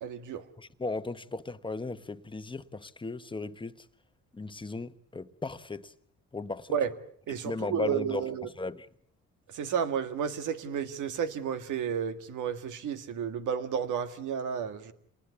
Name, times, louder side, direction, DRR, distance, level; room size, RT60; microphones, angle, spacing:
voice 1, 0.0-0.4 6.7-6.9 7.3-8.5 9.5-14.9, right 7 dB, 80° right, 1.9 m, -32 dB
voice 2, 0.6-3.8 4.3-5.9 6.3-6.8 7.4-8.9, left 3 dB, 15° left, 1.1 m, -36 dB
27.5 x 19.5 x 8.3 m
cardioid pair, 90°, 30 cm